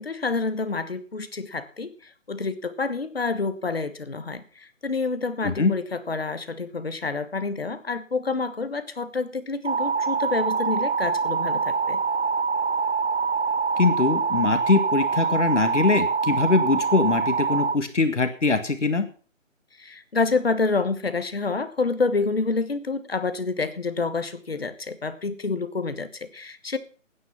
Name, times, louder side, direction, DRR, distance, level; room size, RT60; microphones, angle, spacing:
voice 1, 0.0-1.9 2.3-4.4 4.8-12.0 19.8-26.8, left 4 dB, 50° left, 12 dB, 1.3 m, -28 dB
sound 1, 9.6-17.8, right 5 dB, 60° right, 0.7 m, -25 dB
voice 2, 13.8-19.1, left 3 dB, 65° left, 8 dB, 1.9 m, -22 dB
13.0 x 9.6 x 5.9 m, 0.40 s
figure-of-eight pair, 175°, 39 cm